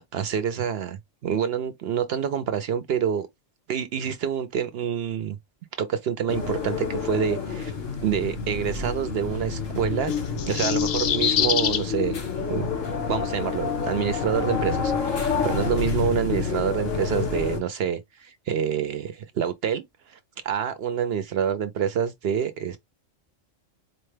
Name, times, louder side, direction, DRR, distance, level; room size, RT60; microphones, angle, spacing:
voice 1, 0.0-3.3 3.7-5.4 5.8-7.7 8.0-10.1 10.5-12.2 12.5-12.7 13.1-20.2 20.4-22.8, right 8 dB, 65° right, 0.7 m, -27 dB
sound 1, 6.3-17.6, left 5 dB, 85° left, 1.6 m, -28 dB
sound 2, 10.1-11.8, left 9 dB, 60° left, 0.6 m, -25 dB
4.4 x 2.1 x 3.2 m
omnidirectional pair, 1.3 m